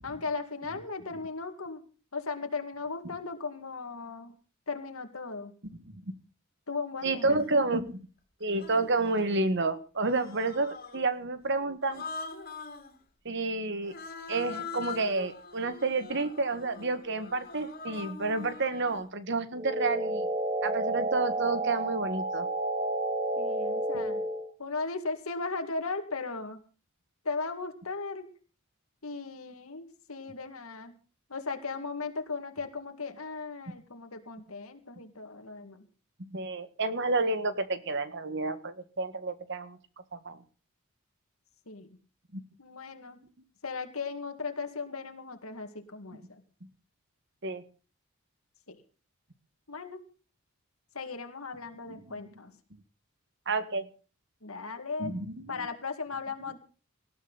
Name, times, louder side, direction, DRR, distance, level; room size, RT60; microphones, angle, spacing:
voice 1, 0.0-1.8 2.1-4.3 4.7-5.5 6.7-7.4 23.4-24.2 24.6-26.6 27.2-28.3 29.0-31.0 31.3-35.9 41.7-42.0 42.6-43.2 43.6-46.4 48.7-48.8 49.7-50.0 50.9-52.5 54.4-55.1 55.5-56.6, left 4 dB, 75° left, 6 dB, 2.1 m, -37 dB
voice 2, 7.0-8.1 8.4-12.0 13.2-13.9 14.3-20.3 20.6-22.5 36.3-39.8 40.1-40.4 42.3-42.4 47.4-47.6 51.9-52.0 53.4-53.9 55.0-55.6, right 3 dB, 55° right, 11 dB, 1.7 m, -30 dB
Human voice, 7.4-7.5 8.5-9.4 10.0-11.1 11.8-12.9 13.8-19.1, left 4 dB, 40° left, 3.0 m, -43 dB
sound 1, 19.6-24.5, right 1 dB, 30° right, 1.3 m, -31 dB
19.0 x 13.0 x 4.1 m, 0.37 s
head